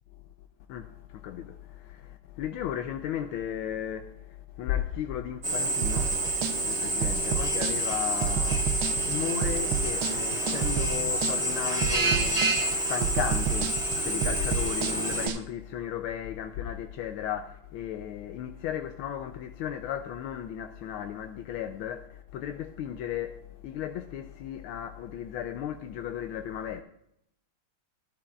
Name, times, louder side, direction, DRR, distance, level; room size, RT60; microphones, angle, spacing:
voice 1, 0.7-26.8, left 10 dB, 85° left, 1.5 m, -35 dB
Drill, 5.4-15.3, right 1 dB, 35° right, 2.1 m, -28 dB
sound 1, 5.8-15.4, right 8 dB, 80° right, 1.5 m, -31 dB
15.5 x 11.5 x 2.4 m
omnidirectional pair, 2.3 m